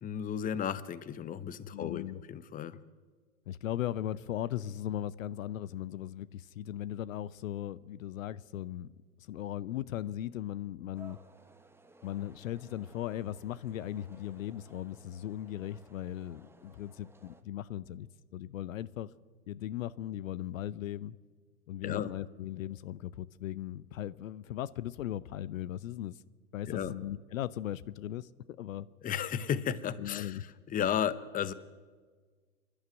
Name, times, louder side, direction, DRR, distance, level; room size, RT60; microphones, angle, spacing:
voice 1, 0.0-2.0 2.3-2.8 21.8-22.1 26.7-27.0 29.0-31.5, left 9 dB, 20° left, 16 dB, 0.9 m, -34 dB
voice 2, 1.7-2.2 3.5-8.9 9.2-11.2 12.0-18.1 18.3-19.1 19.5-21.2 21.7-26.2 26.5-28.3 28.6-28.9 30.0-30.4, left 12 dB, 65° left, 19 dB, 0.8 m, -38 dB
sound 1, 10.9-17.4, right 3 dB, 5° right, 1.3 m, -58 dB
27.5 x 11.5 x 9.3 m, 1.5 s
hypercardioid pair, 100°, 43 cm